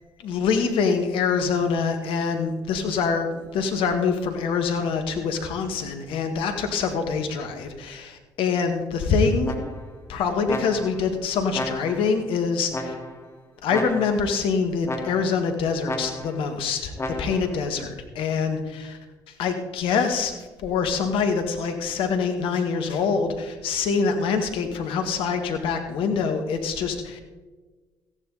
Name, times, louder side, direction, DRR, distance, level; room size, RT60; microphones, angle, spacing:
voice 1, 0.2-9.5 10.1-12.9 13.6-16.9 17.2-19.0 19.4-27.2, left 5 dB, 70° left, 6 dB, 1.8 m, -25 dB
sound 1, 9.4-10.0 10.5-11.1 11.5-12.2 12.7-13.3 13.7-14.3 14.8-15.4 15.8-16.5 17.0-17.6, left 2 dB, 30° left, 2.5 m, -33 dB
14.5 x 10.5 x 4.0 m, 1.3 s
hypercardioid pair, 50°, 9 cm